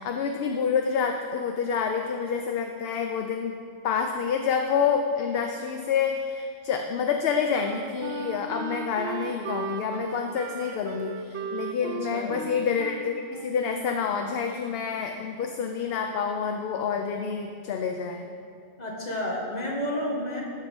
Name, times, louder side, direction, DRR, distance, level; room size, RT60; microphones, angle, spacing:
voice 1, 0.0-3.6 3.8-18.3, left 6 dB, 70° left, 4 dB, 0.8 m, -28 dB
Wind instrument woodwind instrument, 7.1-14.3, right 7 dB, 80° right, 0.9 m, -37 dB
voice 2, 11.8-12.4 18.8-20.4, left 1 dB, 40° left, -3 dB, 1.7 m, -31 dB
13.0 x 4.6 x 5.3 m, 2.3 s
omnidirectional pair, 1.1 m